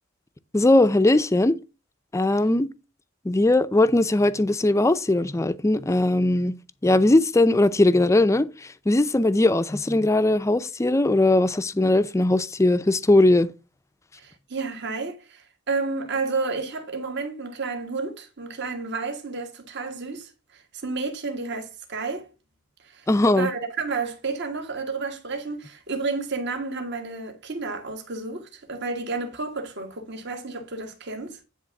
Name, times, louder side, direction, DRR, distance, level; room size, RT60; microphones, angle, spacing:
voice 1, 0.5-1.6 2.1-2.7 3.2-6.5 6.8-8.5 8.9-13.5 23.1-23.5, left 2 dB, 15° left, 0.4 m, -19 dB
voice 2, 14.2-22.3 22.8-23.1 23.4-31.4, right 4 dB, 60° right, 1.6 m, -31 dB
9.9 x 3.5 x 5.9 m
head